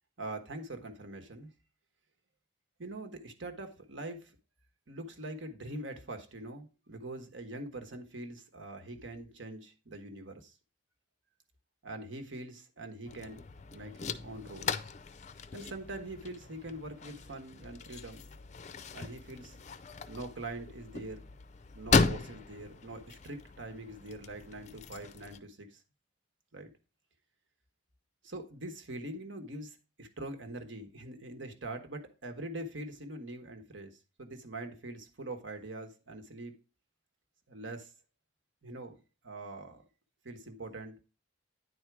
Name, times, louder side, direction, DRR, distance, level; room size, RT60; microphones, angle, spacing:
voice 1, 0.2-1.5 2.8-4.3 4.9-10.5 11.8-13.4 13.7-14.9 15.5-18.3 18.9-19.6 20.1-21.3 21.7-25.8 26.5-26.7 28.2-36.5 37.5-37.9 38.6-39.0 39.2-39.8 40.2-41.0, right 2 dB, 75° right, 1.3 m, -43 dB
sound 1, 13.1-25.4, left 4 dB, 35° left, 0.4 m, -36 dB
9.8 x 4.3 x 4.7 m
head